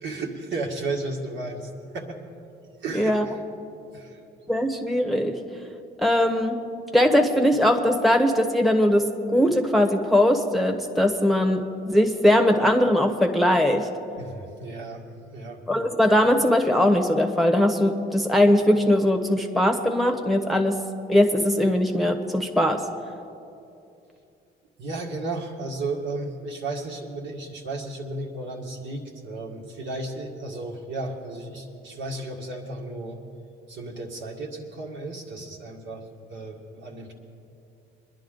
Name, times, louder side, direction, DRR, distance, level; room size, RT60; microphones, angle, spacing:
voice 1, 0.0-2.2 2.8-3.4 3.9-4.2 14.2-15.6 24.8-33.2 33.7-36.0 36.3-37.1, right 2 dB, 75° right, -1 dB, 2.0 m, -34 dB
voice 2, 2.9-3.2 4.5-5.4 6.0-6.6 6.9-13.9 15.7-20.8 21.1-22.8, left 1 dB, ahead, 3 dB, 1.1 m, -20 dB
22.0 x 10.5 x 3.9 m, 2.7 s
cardioid pair, 90°, 20 cm